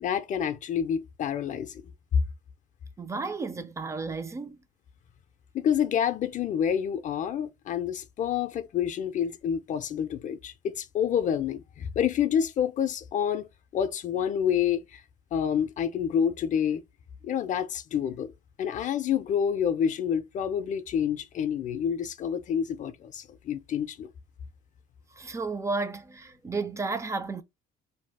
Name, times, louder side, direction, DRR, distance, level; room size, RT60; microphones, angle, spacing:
voice 1, 0.0-1.8 5.5-13.5 13.7-15.0 15.3-16.8 17.2-18.3 18.6-24.1, left 8 dB, 50° left, 0.4 m, -28 dB
voice 2, 3.0-4.6 25.2-27.4, right 3 dB, 15° right, 0.4 m, -32 dB
2.6 x 2.3 x 3.4 m
cardioid pair, 110°, 17 cm